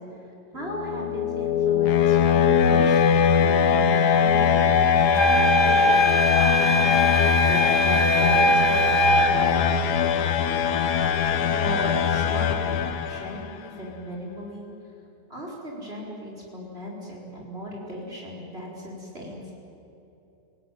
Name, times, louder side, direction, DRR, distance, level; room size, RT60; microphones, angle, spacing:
voice 1, 0.5-9.7 11.2-14.7 15.3-19.5, equal, 40° right, -2 dB, 4.8 m, -37 dB
sound 1, 0.6-13.5, left 7 dB, 85° left, 1.6 m, -21 dB
sound 2, 5.1-9.4, equal, 15° left, 1.4 m, -21 dB
29.5 x 17.5 x 9.4 m, 2.9 s
omnidirectional pair, 1.7 m